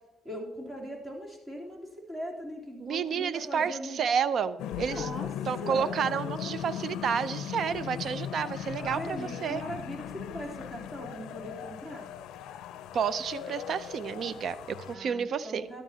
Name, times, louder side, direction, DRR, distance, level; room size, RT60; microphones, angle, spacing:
voice 1, 0.2-4.0 4.9-5.3 5.6-6.0 8.8-12.1 14.9-15.8, equal, 20° right, -1 dB, 3.4 m, -40 dB
voice 2, 2.8-5.1 5.5-9.6 12.9-15.7, right 7 dB, 60° right, 15 dB, 0.6 m, -30 dB
sound 1, 4.6-14.9, left 10 dB, 90° left, 0.5 m, -38 dB
14.0 x 11.5 x 2.8 m, 1.1 s
cardioid pair, 90°, 0 cm